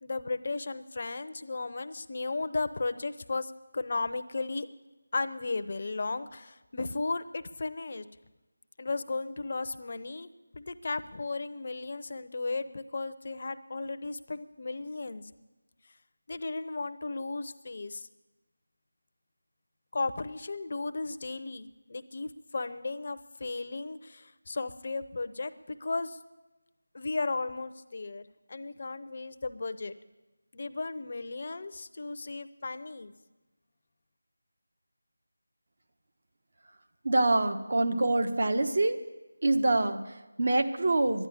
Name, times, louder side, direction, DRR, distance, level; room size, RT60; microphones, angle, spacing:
voice 1, 0.0-4.7 5.1-8.0 8.8-15.2 16.3-18.1 19.9-26.2 26.9-29.9 30.5-33.1, left 3 dB, 45° left, 11 dB, 0.7 m, -35 dB
voice 2, 37.0-39.0 39.4-41.3, right 2 dB, 55° right, 7 dB, 1.1 m, -26 dB
11.5 x 10.5 x 9.8 m, 1.1 s
figure-of-eight pair, 170°, 0 cm